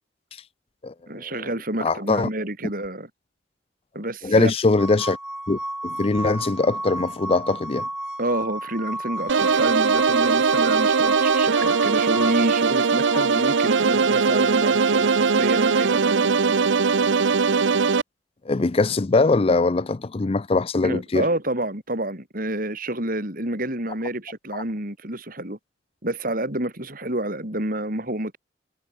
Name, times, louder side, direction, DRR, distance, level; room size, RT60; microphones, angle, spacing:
voice 1, 1.1-3.1 3.9-4.5 8.2-16.6 20.8-25.6 26.0-28.4, right 1 dB, 50° right, 6.3 m, -28 dB
voice 2, 1.8-2.3 4.2-5.2 5.5-7.9 13.1-13.2 18.5-21.2, left 3 dB, 30° left, 0.5 m, -22 dB
sound 1, 4.8-12.3, right 1 dB, 5° right, 7.6 m, -32 dB
sound 2, 9.3-18.0, right 5 dB, 90° right, 0.7 m, -20 dB
head